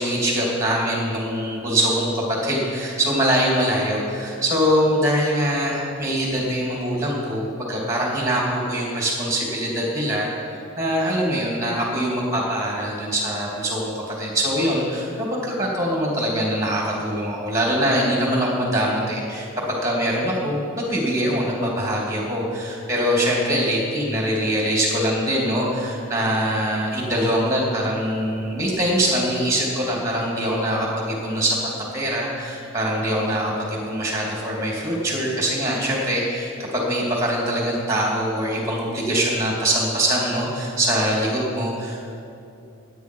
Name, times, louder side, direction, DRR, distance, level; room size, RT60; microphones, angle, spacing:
voice 1, 0.0-10.3 10.5-19.5 19.8-31.6 31.9-42.1, equal, 15° right, -3 dB, 2.8 m, -23 dB
17.5 x 9.2 x 4.7 m, 2.7 s
head